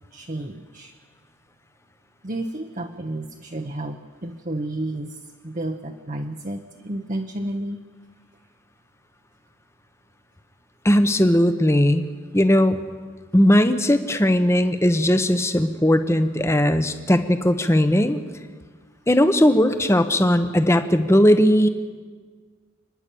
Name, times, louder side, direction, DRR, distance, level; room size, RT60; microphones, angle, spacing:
voice 1, 0.1-0.9 2.2-7.8, right 1 dB, 35° right, 4 dB, 0.9 m, -31 dB
voice 2, 10.8-12.1 12.3-12.8 13.3-18.2 19.1-21.7, equal, 15° left, 9 dB, 0.9 m, -18 dB
29.0 x 10.5 x 8.5 m, 1.5 s
head